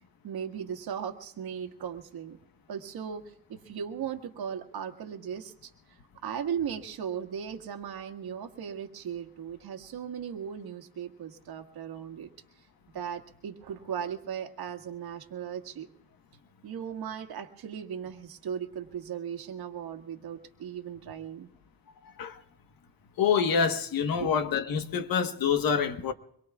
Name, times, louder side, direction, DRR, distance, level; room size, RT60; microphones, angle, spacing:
voice 1, 0.2-2.4 2.7-3.2 3.5-5.7 6.2-12.3 12.9-15.9 16.6-21.5 24.2-24.3, right 8 dB, 60° right, 1.8 m, -37 dB
voice 2, 23.2-26.1, left 7 dB, 55° left, 1.4 m, -26 dB
25.0 x 22.5 x 2.4 m
cardioid pair, 130°, 42 cm